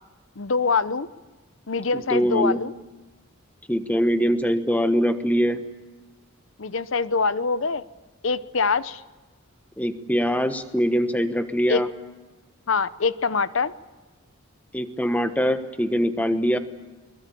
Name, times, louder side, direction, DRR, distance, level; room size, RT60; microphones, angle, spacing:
voice 1, 0.4-1.1 1.7-2.7 6.6-7.8 8.2-9.0 11.7-11.8 12.7-13.7, left 4 dB, 65° left, 15 dB, 0.8 m, -24 dB
voice 2, 1.9-2.6 3.7-5.6 9.8-11.9 14.7-16.6, equal, 5° left, 9 dB, 1.2 m, -23 dB
22.5 x 22.0 x 8.5 m, 1.2 s
head